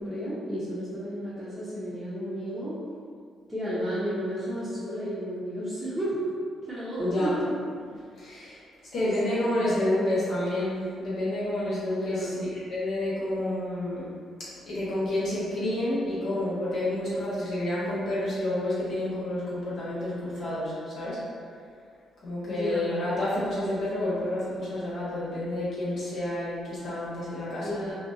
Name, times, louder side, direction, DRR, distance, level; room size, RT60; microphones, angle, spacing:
voice 1, 0.0-2.8 3.5-6.2 6.6-7.5 9.0-10.2 11.8-12.3 22.5-22.9 27.6-27.9, equal, ahead, -14 dB, 0.8 m, -32 dB
voice 2, 7.0-7.3 8.2-8.6 8.9-12.3 12.5-14.1 14.7-21.2 22.2-27.7, left 1 dB, 65° left, -9 dB, 1.1 m, -29 dB
2.5 x 2.3 x 2.6 m, 2.2 s
cardioid pair, 90°, 0 cm